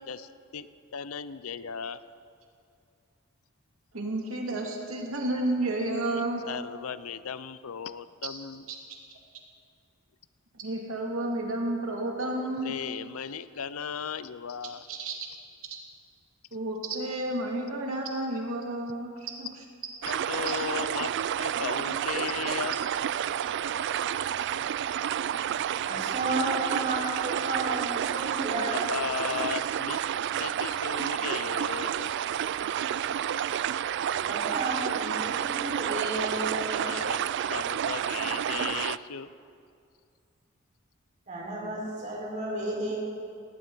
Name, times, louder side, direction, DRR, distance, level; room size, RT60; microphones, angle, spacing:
voice 1, 0.0-2.0 6.1-8.6 12.6-14.9 20.0-21.1 21.4-22.8 28.7-30.1 30.4-32.2 36.7-39.3, left 7 dB, 90° left, 14 dB, 0.6 m, -36 dB
voice 2, 3.9-6.4 10.6-12.7 14.9-15.3 16.5-19.5, right 1 dB, 80° right, 0 dB, 2.4 m, -31 dB
sound 1, 20.0-39.0, right 9 dB, 55° right, 0.3 m, -30 dB
voice 3, 25.8-28.8 34.2-36.9 41.3-43.0, right 2 dB, 35° right, -4 dB, 4.7 m, -32 dB
19.0 x 18.0 x 4.0 m, 2.4 s
head